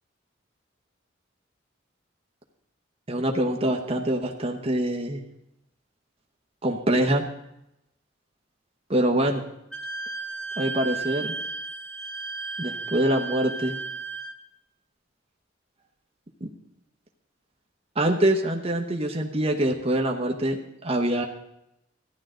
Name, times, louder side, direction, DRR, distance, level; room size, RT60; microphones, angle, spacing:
voice 1, 3.1-5.2 6.6-7.2 8.9-9.4 10.6-11.3 12.6-13.8 16.4-16.5 18.0-21.2, right 1 dB, 30° right, 1 dB, 1.0 m, -24 dB
Wind instrument woodwind instrument, 9.7-14.4, right 4 dB, 5° left, 0.7 m, -34 dB
14.5 x 10.5 x 3.8 m, 0.83 s
head